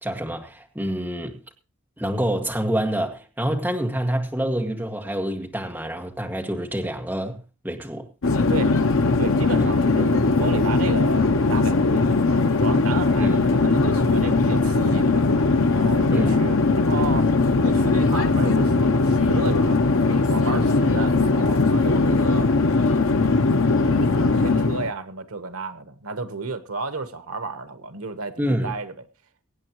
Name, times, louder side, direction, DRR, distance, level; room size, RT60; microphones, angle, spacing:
voice 1, 0.0-1.4 2.0-7.4 7.6-8.1 9.6-9.7 13.2-13.4 16.1-16.5 28.4-28.7, right 1 dB, 10° right, 1.8 m, -27 dB
Conversation / Chatter / Fixed-wing aircraft airplane, 8.2-24.9, left 3 dB, 75° left, 0.8 m, -20 dB
voice 2, 9.2-12.2 12.6-15.3 15.7-17.3 17.6-22.5 23.9-28.9, right 3 dB, 90° right, 1.2 m, -32 dB
24.0 x 8.9 x 3.0 m
head